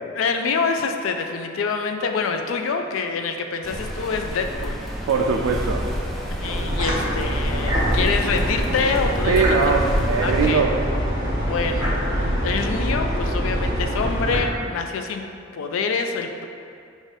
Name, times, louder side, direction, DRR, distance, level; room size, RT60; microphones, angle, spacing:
voice 1, 0.1-5.1 6.3-9.6 10.2-10.6 11.4-15.2 15.5-16.5, left 5 dB, 80° left, 5 dB, 0.4 m, -26 dB
sound 1, 3.6-10.5, equal, ahead, 0.4 m, -30 dB
voice 2, 5.1-5.9 9.3-10.7, right 5 dB, 90° right, 1 dB, 0.3 m, -21 dB
sound 2, 6.4-14.4, equal, 20° right, 0.8 m, -24 dB
5.0 x 2.4 x 4.0 m, 2.4 s
head